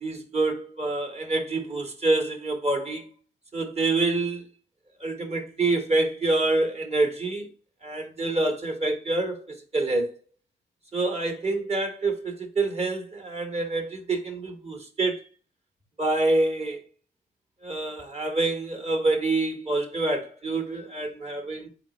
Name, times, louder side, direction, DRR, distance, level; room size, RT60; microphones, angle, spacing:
voice 1, 0.0-3.1 3.5-4.5 5.0-7.5 7.8-10.1 10.9-15.2 16.0-16.8 17.6-21.7, right 2 dB, 35° right, 1.2 m, -26 dB
4.0 x 3.8 x 3.0 m
supercardioid pair, 55°, 19 cm